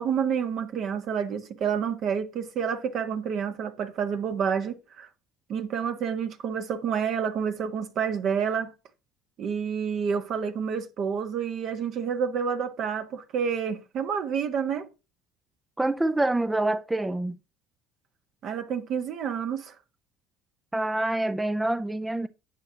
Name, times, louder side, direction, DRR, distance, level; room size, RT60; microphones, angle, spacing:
voice 1, 0.0-5.1 5.5-8.7 9.4-14.9 18.4-19.7, right 7 dB, 55° right, 1.6 m, -29 dB
voice 2, 15.8-17.4 20.7-22.3, right 2 dB, 10° right, 0.5 m, -26 dB
11.0 x 8.0 x 2.9 m
hypercardioid pair, 75°, 0 cm